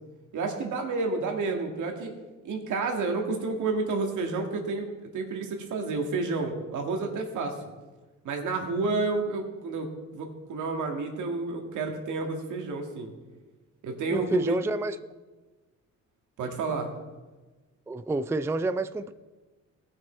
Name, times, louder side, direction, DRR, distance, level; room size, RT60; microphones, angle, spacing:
voice 1, 0.3-2.1 2.4-4.9 5.1-7.6 8.2-9.9 10.1-13.1 13.8-14.6 16.4-16.9, right 3 dB, 75° right, 3 dB, 1.9 m, -30 dB
voice 2, 14.1-15.1 17.9-19.1, right 2 dB, 10° right, 11 dB, 0.4 m, -29 dB
16.5 x 6.2 x 4.4 m, 1.2 s
cardioid pair, 90°, 30 cm